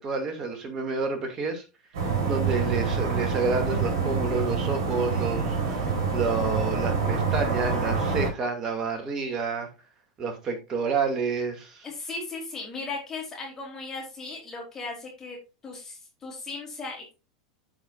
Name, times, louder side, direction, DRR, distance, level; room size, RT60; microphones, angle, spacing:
voice 1, 0.0-1.6 1.9-9.7 10.2-11.9, right 4 dB, 30° right, 2.3 m, -29 dB
sound 1, 1.9-8.3, right 5 dB, 55° right, 4.0 m, -26 dB
voice 2, 11.8-15.4 15.6-17.1, left 3 dB, 20° left, 3.2 m, -37 dB
14.0 x 5.0 x 2.5 m
figure-of-eight pair, 85°, 2 cm